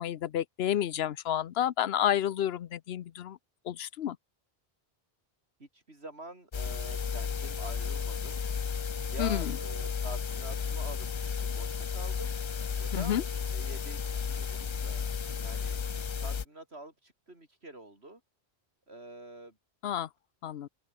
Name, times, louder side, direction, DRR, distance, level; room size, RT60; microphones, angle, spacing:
voice 1, 0.0-3.4 3.7-4.2 9.2-9.5 12.9-13.2 19.8-20.1 20.4-20.7, left 10 dB, 75° left, 0.9 m, -30 dB
voice 2, 5.6-8.4 9.0-12.3 12.8-13.2 13.5-15.8 16.2-18.2 18.9-19.6, right 2 dB, 90° right, 5.8 m, -46 dB
sound 1, 6.5-16.5, left 6 dB, 40° left, 0.5 m, -33 dB
omnidirectional pair, 1.1 m